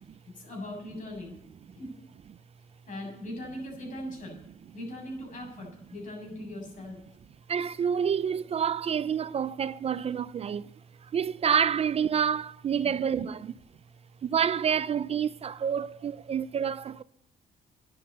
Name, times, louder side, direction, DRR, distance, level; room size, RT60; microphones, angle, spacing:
voice 1, 0.3-1.4 1.8-1.9 2.9-4.4 4.7-7.0 12.8-13.0 13.2-13.3, left 1 dB, 55° left, 7.4 m, -40 dB
voice 2, 7.5-10.7 11.0-13.4 14.2-17.0, right 7 dB, 40° right, 0.4 m, -28 dB
11.5 x 10.5 x 8.1 m
cardioid pair, 105°, 16 cm